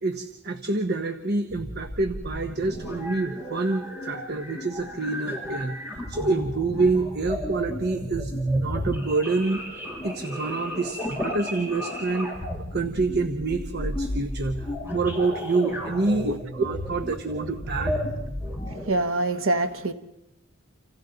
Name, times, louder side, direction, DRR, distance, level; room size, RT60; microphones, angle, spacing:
voice 1, 0.0-9.7 10.0-12.3 12.7-18.0, right 3 dB, 55° right, 7 dB, 1.1 m, -27 dB
sound 1, 1.5-18.9, equal, 10° right, 6.5 m, -33 dB
voice 2, 18.9-19.9, right 2 dB, 80° right, 7 dB, 1.3 m, -24 dB
28.5 x 27.5 x 4.0 m, 0.92 s
head